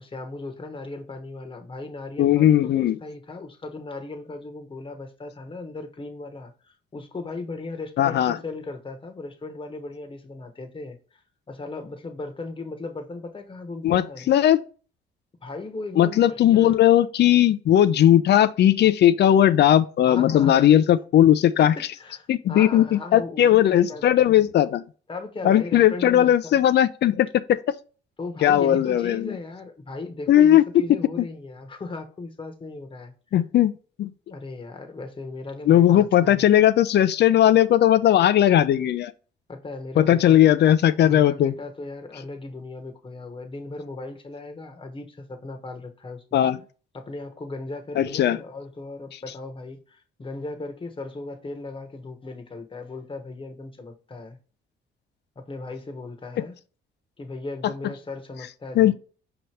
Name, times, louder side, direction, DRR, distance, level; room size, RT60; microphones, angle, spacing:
voice 1, 0.0-14.3 15.4-16.7 20.1-20.8 21.4-24.1 25.1-26.6 28.2-33.4 34.3-36.4 39.5-40.5 41.0-46.4 46.9-54.4 55.4-56.6 57.2-58.9, left 3 dB, 25° left, 1.0 m, -37 dB
voice 2, 2.2-3.0 8.0-8.4 13.8-14.6 16.0-21.7 22.3-24.8 25.4-27.6 28.4-29.3 30.3-30.6 33.3-33.7 34.0-34.1 35.7-39.1 40.0-41.5 46.3-46.6 48.0-48.4 58.8-58.9, left 11 dB, 60° left, 0.4 m, -18 dB
5.2 x 2.9 x 3.1 m
cardioid pair, 90°, 20 cm